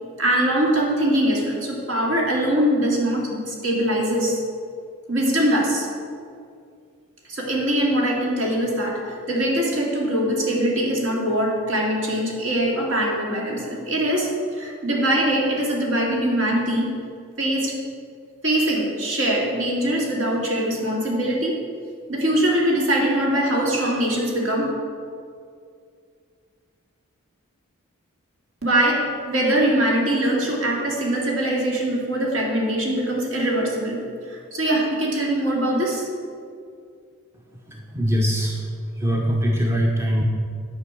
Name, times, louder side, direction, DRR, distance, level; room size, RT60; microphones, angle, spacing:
voice 1, 0.2-4.4 5.1-5.9 7.3-16.9 17.4-17.7 18.4-21.6 22.1-24.7 28.6-36.1, right 1 dB, 60° right, -2 dB, 2.4 m, -22 dB
voice 2, 37.7-38.6 38.9-40.2, equal, 10° right, -1 dB, 0.8 m, -22 dB
10.5 x 5.3 x 8.3 m, 2.3 s
head